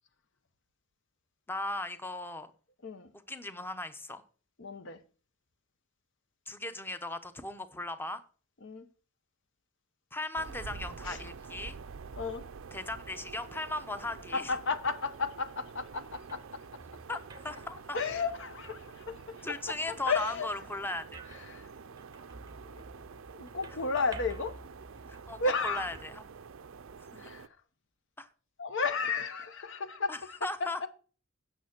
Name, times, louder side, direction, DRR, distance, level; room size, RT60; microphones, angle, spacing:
voice 1, 1.5-2.5 3.1-4.2 6.5-8.2 10.1-11.8 12.7-14.5 17.1-17.2 17.4-18.0 19.4-21.3 25.1-26.2 27.1-27.3 28.2-28.3 30.1-30.9, left 2 dB, 10° left, 0.8 m, -37 dB
voice 2, 4.6-5.0 8.6-8.9 11.0-11.2 12.1-12.5 14.3-16.6 17.9-19.5 19.9-20.5 21.5-21.7 22.7-22.8 23.3-24.6 25.4-25.9 27.2-27.5 28.6-30.7, left 4 dB, 60° left, 1.0 m, -33 dB
sound 1, 10.4-27.5, right 5 dB, 65° right, 0.5 m, -48 dB
sound 2, 15.6-27.0, right 2 dB, 20° right, 0.7 m, -52 dB
9.2 x 6.6 x 6.0 m
head